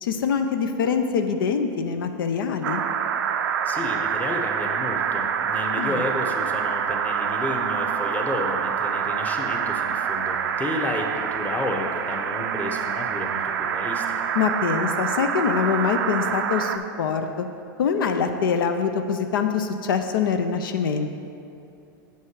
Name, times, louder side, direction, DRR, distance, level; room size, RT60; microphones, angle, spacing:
voice 1, 0.0-2.8 5.8-6.1 14.3-17.5 17.8-21.1, left 6 dB, 80° left, 7 dB, 0.5 m, -24 dB
sound 1, 2.6-16.8, right 7 dB, 80° right, 0.5 m, -26 dB
voice 2, 3.6-14.0, left 2 dB, 15° left, 2 dB, 0.9 m, -31 dB
7.7 x 5.5 x 4.7 m, 2.7 s
hypercardioid pair, 115°, 11 cm